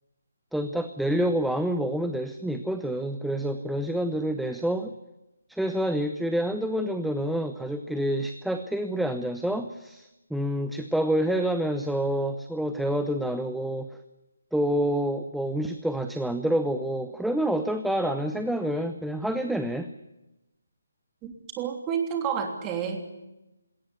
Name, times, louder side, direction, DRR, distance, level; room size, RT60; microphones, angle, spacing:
voice 1, 0.5-4.9 5.5-13.9 14.5-19.9, right 1 dB, ahead, 8 dB, 0.8 m, -28 dB
voice 2, 21.2-23.1, right 7 dB, 15° right, 5 dB, 3.1 m, -30 dB
20.5 x 18.0 x 9.6 m, 0.96 s
figure-of-eight pair, 150°, 0 cm